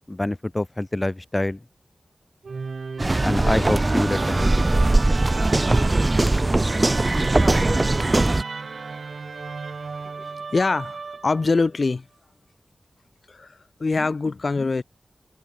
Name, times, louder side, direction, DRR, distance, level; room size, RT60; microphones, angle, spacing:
voice 1, 0.1-1.6 3.2-4.8, left 1 dB, 20° left, 0.4 m, -26 dB
Musical instrument, 2.4-11.7, right 4 dB, 70° right, 0.5 m, -33 dB
sound 1, 3.0-8.4, right 2 dB, 30° right, 1.1 m, -20 dB
voice 2, 10.2-12.1 13.3-14.8, left 3 dB, 50° left, 0.7 m, -24 dB
wide cardioid pair, 80°, 0 cm